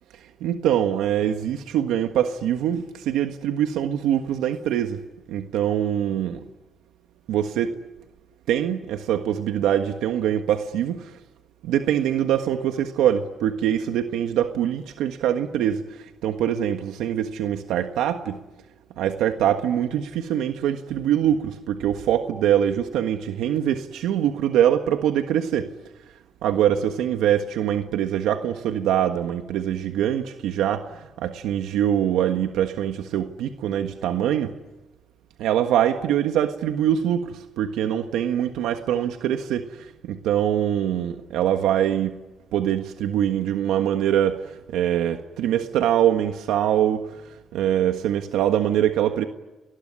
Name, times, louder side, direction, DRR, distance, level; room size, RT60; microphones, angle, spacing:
voice 1, 0.4-5.0 5.3-6.4 7.3-7.8 8.5-11.0 11.6-15.8 16.2-18.4 19.0-25.7 26.4-30.8 31.2-34.5 35.4-37.3 37.6-39.6 40.1-42.1 42.5-44.4 44.7-47.0 47.5-49.2, right 10 dB, 90° right, 1.5 m, -23 dB
29.0 x 20.0 x 10.0 m
cardioid pair, 90°, 0 cm